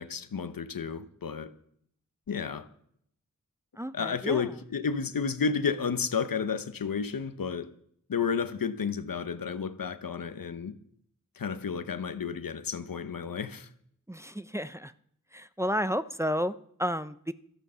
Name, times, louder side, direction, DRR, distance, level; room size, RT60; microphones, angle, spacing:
voice 1, 0.0-1.5 2.3-2.7 3.9-7.7 8.1-10.8 11.4-13.7, left 6 dB, 80° left, 0.9 m, -31 dB
voice 2, 3.8-4.5 14.1-14.9 15.3-17.3, equal, 10° right, 0.6 m, -32 dB
13.0 x 8.9 x 6.8 m
cardioid pair, 40°, 33 cm